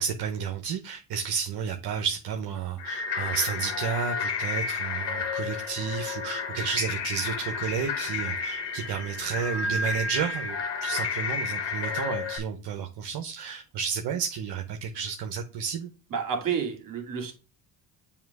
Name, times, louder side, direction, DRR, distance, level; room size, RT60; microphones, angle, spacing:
voice 1, 0.0-15.9, right 6 dB, 65° right, 0.9 m, -31 dB
sound 1, 2.8-12.4, left 5 dB, 70° left, 1.7 m, -31 dB
voice 2, 16.1-17.3, right 6 dB, 45° right, 2.2 m, -30 dB
7.2 x 2.9 x 4.7 m
supercardioid pair, 80°, 44 cm